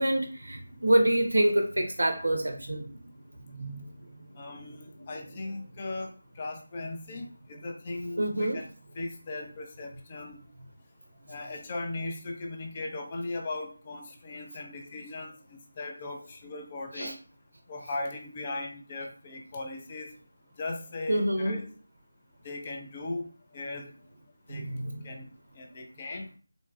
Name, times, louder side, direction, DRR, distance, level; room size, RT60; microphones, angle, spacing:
voice 1, 0.0-3.0 3.4-3.9 5.0-5.1 8.2-8.6 17.0-17.1 21.1-21.6 24.5-25.0, right 1 dB, 75° right, 5 dB, 0.5 m, -27 dB
voice 2, 4.4-4.8 5.1-6.1 6.4-8.7 9.0-10.3 11.3-17.2 17.7-20.1 20.6-21.7 22.4-23.3 23.5-23.9 24.5-24.6 25.0-25.2 25.6-26.3, left 2 dB, 25° left, 1 dB, 0.5 m, -38 dB
3.9 x 2.2 x 2.3 m, 0.39 s
figure-of-eight pair, 165°, 0 cm